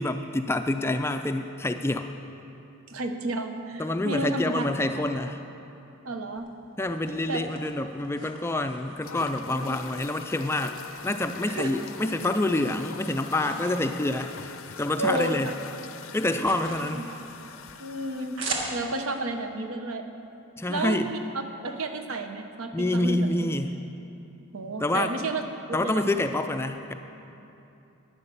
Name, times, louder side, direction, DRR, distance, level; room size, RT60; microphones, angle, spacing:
voice 1, 0.0-2.1 3.8-5.4 6.8-10.8 11.0-15.5 16.1-17.1 20.6-21.1 22.7-23.8 24.8-25.1 25.7-26.9, left 1 dB, 10° left, 7 dB, 0.3 m, -27 dB
voice 2, 2.9-4.6 6.0-6.5 7.3-7.4 9.5-9.8 11.4-11.7 15.0-15.5 16.7-17.1 17.8-18.4 18.7-20.1 20.7-21.2 21.6-23.3 24.5-25.4 25.7-26.1, right 2 dB, 80° right, 6 dB, 0.9 m, -31 dB
sound 1, 6.4-9.2 9.7-10.8 11.1-12.2 12.5-15.1 15.4-19.2, right 3 dB, 60° right, 1.6 m, -40 dB
sound 2, 9.0-18.6, left 6 dB, 70° left, 0.5 m, -43 dB
11.0 x 9.7 x 6.9 m, 2.9 s
head